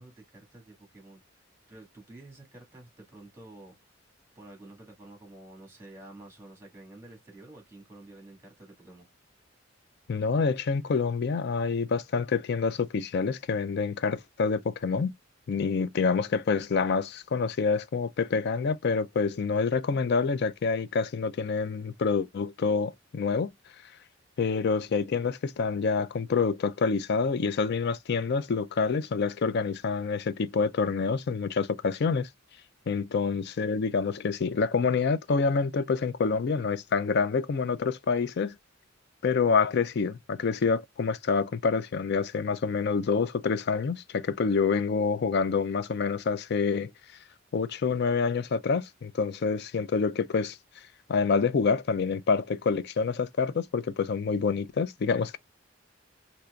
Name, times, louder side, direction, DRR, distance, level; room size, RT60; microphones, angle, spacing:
voice 1, 0.0-3.7 4.4-9.1, right 2 dB, 15° right, 1.9 m, -50 dB
voice 2, 10.1-15.1 15.5-23.5 24.4-32.3 32.9-38.5 39.2-46.9 47.5-50.6 51.1-55.4, left 5 dB, 55° left, 0.4 m, -27 dB
4.4 x 2.9 x 2.4 m
head